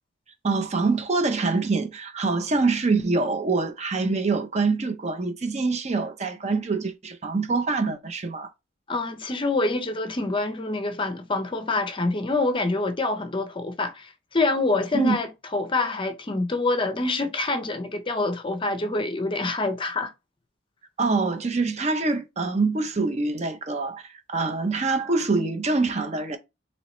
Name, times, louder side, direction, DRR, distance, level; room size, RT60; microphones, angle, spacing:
voice 1, 0.4-8.5 14.9-15.2 21.0-26.4, right 3 dB, 35° right, 0.6 m, -25 dB
voice 2, 8.9-20.1, left 2 dB, 25° left, 0.6 m, -26 dB
4.0 x 3.1 x 3.1 m
head